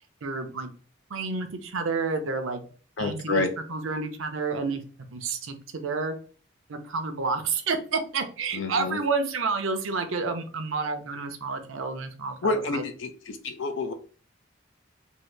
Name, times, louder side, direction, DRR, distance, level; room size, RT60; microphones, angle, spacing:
voice 1, 0.2-0.7 1.1-2.7 3.0-4.8 5.1-6.1 6.7-12.8, right 4 dB, 85° right, 6 dB, 0.6 m, -30 dB
voice 2, 3.0-3.5 8.5-9.0 12.4-13.9, left 3 dB, 70° left, 7 dB, 0.6 m, -28 dB
2.8 x 2.7 x 3.2 m, 0.41 s
head